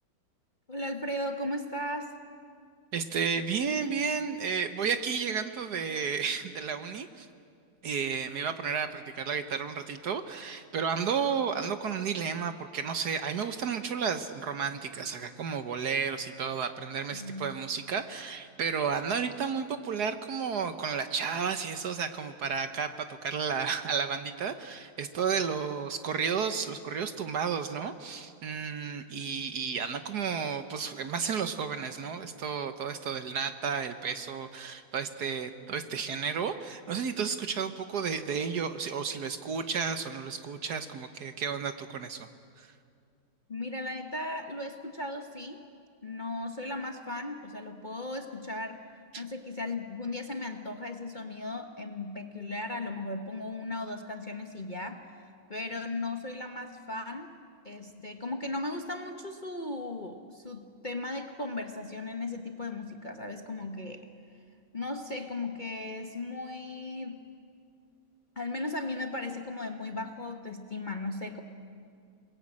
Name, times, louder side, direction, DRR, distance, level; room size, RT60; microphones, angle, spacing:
voice 1, 0.7-2.2 17.1-17.6 43.5-45.6 46.0-48.8 49.2-57.3 57.6-64.1 64.7-67.2 68.4-71.4, left 2 dB, 30° left, 4 dB, 1.1 m, -36 dB
voice 2, 2.9-7.3 7.8-42.3 42.6-42.7 49.1-49.2, right 6 dB, 60° right, 9 dB, 1.4 m, -32 dB
29.0 x 21.0 x 8.6 m, 2.3 s
omnidirectional pair, 2.2 m